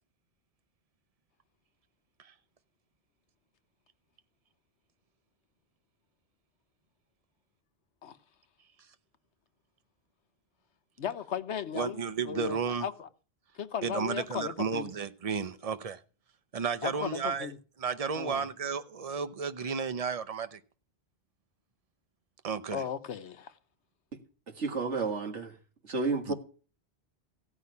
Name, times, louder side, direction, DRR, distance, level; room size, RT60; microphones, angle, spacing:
voice 1, 11.0-12.0 12.2-13.1 13.6-14.9 16.8-17.6 18.2-18.5 22.7-23.5, left 8 dB, 75° left, 1.1 m, -36 dB
voice 2, 11.7-12.9 13.8-16.0 16.5-17.5 17.8-20.6 22.4-22.8 26.3-26.4, right 6 dB, 35° right, 0.8 m, -33 dB
voice 3, 24.5-25.5 25.8-26.3, right 4 dB, 90° right, 2.3 m, -31 dB
16.0 x 5.8 x 9.5 m
omnidirectional pair, 1.2 m